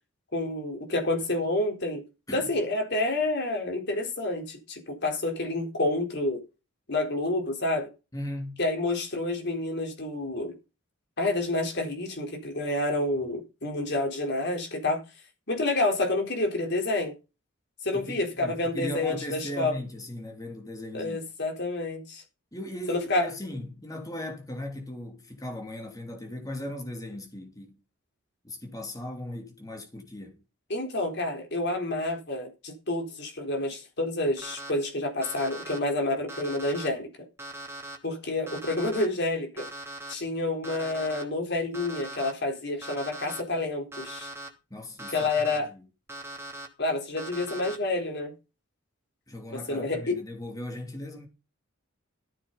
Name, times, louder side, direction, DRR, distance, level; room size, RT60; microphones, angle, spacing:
voice 1, 0.3-2.0 2.3-6.4 6.9-7.9 8.6-10.5 11.2-15.0 15.5-17.1 17.8-19.8 20.9-22.2 22.9-23.3 30.7-37.1 38.0-39.7 40.1-44.3 45.1-45.7 46.8-48.3 49.5-50.2, left 2 dB, 55° left, 4.1 m, -29 dB
voice 2, 8.1-8.6 17.9-21.2 22.5-27.8 28.4-30.4 44.7-45.9 49.3-51.3, left 1 dB, 15° left, 2.9 m, -38 dB
Alarm, 34.4-34.7 35.2-35.8 36.3-36.9 37.4-38.0 38.5-39.0 39.6-40.1 40.6-41.2 41.7-42.3 42.8-43.4 43.9-44.5 45.0-45.6 46.1-46.7 47.2-47.8, right 1 dB, 10° right, 2.8 m, -40 dB
14.0 x 9.5 x 4.1 m
head